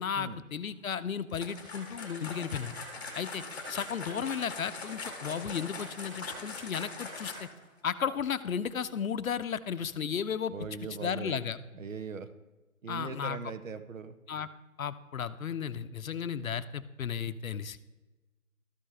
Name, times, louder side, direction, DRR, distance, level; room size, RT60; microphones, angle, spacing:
voice 1, 0.0-2.8 3.1-3.4 3.7-7.5 7.8-10.5 11.0-11.6 12.9-13.4 14.3-14.5 14.8-17.8, left 7 dB, 70° left, 14 dB, 0.6 m, -34 dB
sound 1, 1.3-7.6, left 3 dB, 15° left, 1.2 m, -42 dB
voice 2, 10.5-11.4 11.7-12.3 12.8-14.2, right 5 dB, 65° right, 11 dB, 0.8 m, -40 dB
13.0 x 5.4 x 3.3 m, 1.1 s
figure-of-eight pair, 165°, 43 cm